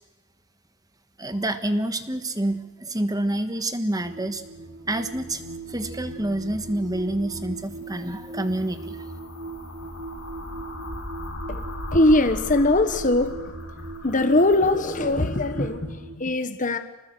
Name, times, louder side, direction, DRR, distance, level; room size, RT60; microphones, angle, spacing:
voice 1, 1.2-4.4 4.9-5.4 5.7-9.0, right 1 dB, 15° right, 9 dB, 1.4 m, -27 dB
sound 1, 4.0-16.2, right 2 dB, 70° right, 6.0 m, -39 dB
sound 2, 7.6-15.7, left 1 dB, 85° left, 6.7 m, -39 dB
voice 2, 11.9-13.4 14.0-16.8, left 2 dB, 40° left, 9 dB, 1.3 m, -21 dB
26.5 x 20.0 x 8.0 m, 1.1 s
head